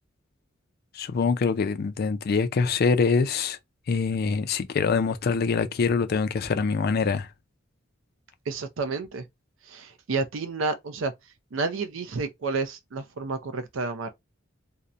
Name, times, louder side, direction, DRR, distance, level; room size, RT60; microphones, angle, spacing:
voice 1, 0.9-3.6 3.9-7.3, left 5 dB, 50° left, 0.4 m, -24 dB
voice 2, 8.5-9.3 9.6-11.1 11.5-14.1, right 4 dB, 75° right, 0.5 m, -30 dB
2.7 x 2.1 x 2.4 m
head